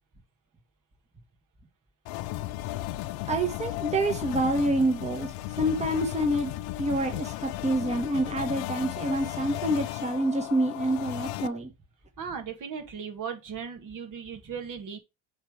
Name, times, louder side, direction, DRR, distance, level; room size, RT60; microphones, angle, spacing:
sound 1, 2.1-11.5, left 16 dB, 75° left, 0.7 m, -35 dB
voice 1, 3.3-5.3 5.6-6.5 6.8-11.7, right 1 dB, 15° right, 1.4 m, -27 dB
voice 2, 12.2-15.0, right 6 dB, 45° right, 1.7 m, -37 dB
7.3 x 3.3 x 4.9 m
supercardioid pair, 95°, 43 cm